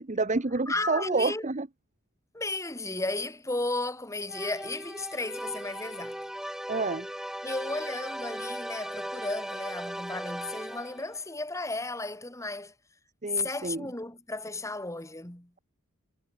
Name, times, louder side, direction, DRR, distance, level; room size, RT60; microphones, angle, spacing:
voice 1, 0.0-1.7 6.7-7.1 13.2-13.9, right 3 dB, 35° right, 0.9 m, -29 dB
voice 2, 0.7-1.5 2.3-6.2 7.4-12.7 13.3-15.5, left 2 dB, 15° left, 2.3 m, -34 dB
sound 1, 4.3-11.1, equal, ahead, 2.4 m, -38 dB
head